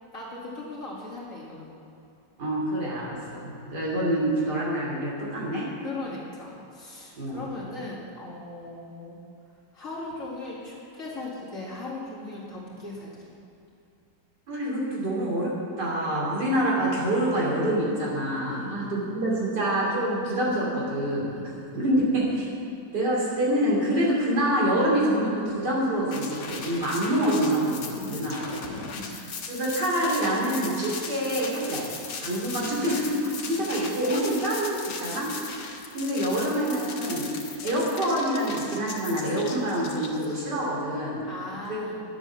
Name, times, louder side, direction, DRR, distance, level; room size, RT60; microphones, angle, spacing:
voice 1, 0.1-1.8 5.8-9.2 9.5-13.3 18.4-19.5 21.3-21.9 27.7-29.3 32.5-33.7 41.2-42.0, left 2 dB, 45° left, -6 dB, 2.6 m, -39 dB
voice 2, 2.4-5.7 7.2-7.4 14.5-21.3 21.7-22.5 22.9-29.2 29.5-31.9 32.2-37.3 37.6-41.2 41.7-41.8, right 1 dB, 65° right, -5 dB, 3.3 m, -26 dB
sound 1, 26.1-40.6, left 5 dB, 75° left, 1.7 m, -38 dB
11.0 x 8.0 x 6.4 m, 2.6 s
omnidirectional pair, 1.9 m